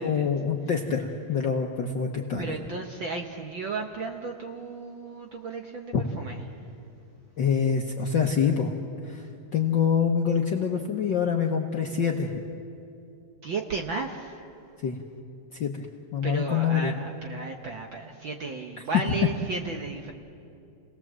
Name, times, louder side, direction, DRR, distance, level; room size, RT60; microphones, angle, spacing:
voice 1, 0.0-2.5 5.9-6.0 7.4-8.7 9.0-9.3 9.5-12.4 14.8-15.0 15.5-15.9 16.1-16.9, left 6 dB, 60° left, 2 dB, 1.2 m, -25 dB
voice 2, 2.4-6.4 13.4-14.4 16.2-20.1, right 4 dB, 60° right, 3 dB, 1.4 m, -34 dB
29.5 x 18.5 x 7.5 m, 2.6 s
omnidirectional pair, 3.3 m